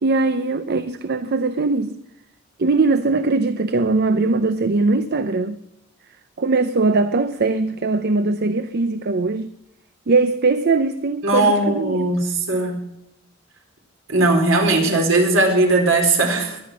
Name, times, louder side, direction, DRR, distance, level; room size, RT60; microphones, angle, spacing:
voice 1, 0.0-2.0 2.6-5.6 6.4-9.5 10.1-12.1 14.9-15.0, right 3 dB, 55° right, 0.6 m, -20 dB
voice 2, 11.2-12.8 14.1-16.6, right 2 dB, 70° right, 4.3 m, -18 dB
22.5 x 10.0 x 6.3 m
head